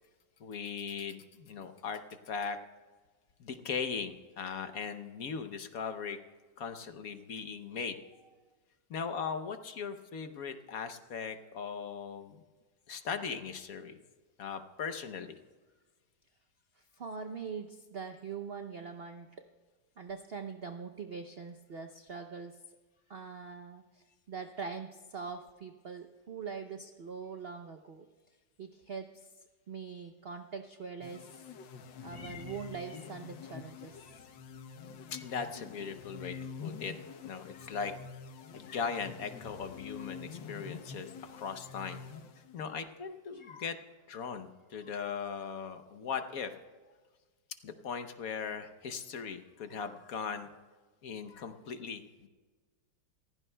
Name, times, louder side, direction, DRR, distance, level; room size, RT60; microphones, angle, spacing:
voice 1, 0.4-2.0 2.3-2.6 3.4-6.2 6.6-8.0 8.9-12.4 12.9-14.0 14.4-15.3 32.1-32.4 34.0-34.2 35.1-36.9 37.2-37.9 38.5-42.0 42.5-43.8 44.1-46.5 47.6-50.5 51.0-52.3, left 6 dB, 60° left, 8 dB, 1.1 m, -39 dB
voice 2, 16.8-19.3 20.0-22.6 23.1-28.1 28.6-29.3 29.7-31.5 32.0-34.0 43.3-43.4, right 5 dB, 80° right, 6 dB, 0.5 m, -43 dB
sound 1, 31.0-42.8, left 6 dB, 85° left, 1.6 m, -47 dB
27.5 x 15.5 x 2.2 m, 1.4 s
omnidirectional pair, 2.0 m